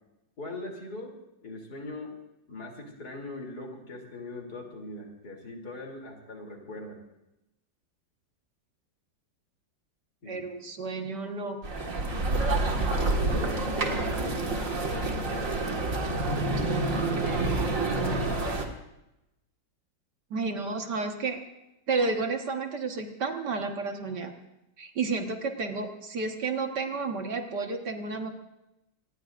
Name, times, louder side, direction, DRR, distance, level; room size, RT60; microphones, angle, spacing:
voice 1, 0.4-1.2 1.4-2.1 2.5-7.0 10.2-10.4 12.8-17.8, left 2 dB, 55° left, 2 dB, 3.7 m, -41 dB
voice 2, 10.3-11.9 20.3-21.4 21.9-24.3 24.8-28.3, right 4 dB, 65° right, 3 dB, 2.1 m, -31 dB
sound 1, 11.6-18.6, right 2 dB, 45° right, 2.2 m, -28 dB
26.0 x 19.5 x 2.6 m, 0.90 s
omnidirectional pair, 2.0 m